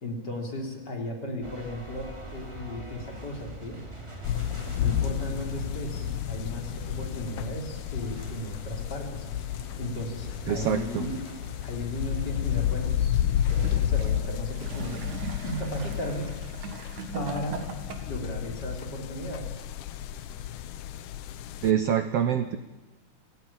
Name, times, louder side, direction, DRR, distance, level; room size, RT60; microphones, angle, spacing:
voice 1, 0.0-3.8 4.8-9.3 9.8-11.2 11.6-13.2 13.5-15.1 15.4-16.3 17.2-17.6 18.1-19.6, equal, 30° left, 1 dB, 3.8 m, -35 dB
sound 1, 1.4-13.7, equal, 10° right, 2.2 m, -44 dB
sound 2, 4.2-21.7, left 10 dB, 75° left, 2.2 m, -31 dB
voice 2, 10.5-11.0 21.6-22.6, right 9 dB, 85° right, 10 dB, 1.3 m, -25 dB
Gurgling / Toilet flush, 13.4-18.3 19.1-19.2, right 5 dB, 65° right, 3.2 m, -40 dB
26.5 x 15.5 x 8.8 m, 1.2 s
omnidirectional pair, 3.9 m